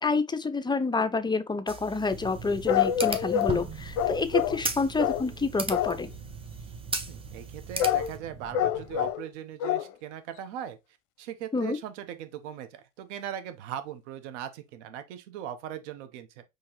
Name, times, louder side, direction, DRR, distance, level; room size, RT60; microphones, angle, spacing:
voice 1, 0.0-6.1 11.5-11.8, left 4 dB, 10° left, 0.5 m, -28 dB
sound 1, 1.7-8.2, right 3 dB, 15° right, 0.8 m, -37 dB
sound 2, 2.1-9.1, right 4 dB, 55° right, 1.4 m, -45 dB
sound 3, 2.7-3.6 4.0-4.6 5.0-5.3 5.7-6.0 7.8-8.1 8.5-9.3 9.6-9.9 10.4-10.5, left 9 dB, 55° left, 0.6 m, -26 dB
voice 2, 7.1-10.8 11.2-16.4, right 10 dB, 70° right, 0.9 m, -39 dB
4.5 x 3.1 x 2.9 m
hypercardioid pair, 70°, 36 cm